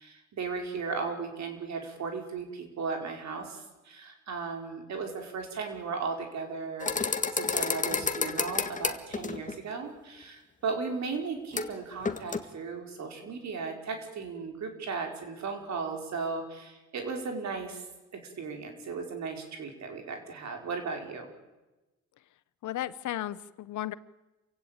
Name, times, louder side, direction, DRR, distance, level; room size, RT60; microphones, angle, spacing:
voice 1, 0.0-17.8 18.1-21.3, right 4 dB, 65° right, 4 dB, 5.0 m, -36 dB
sound 1, 6.8-9.5 11.5-11.7 12.0-12.4, left 4 dB, 25° left, 1.8 m, -30 dB
voice 2, 22.6-23.9, left 13 dB, 75° left, 17 dB, 1.0 m, -34 dB
27.5 x 16.5 x 8.9 m, 1.1 s
cardioid pair, 90°, 30 cm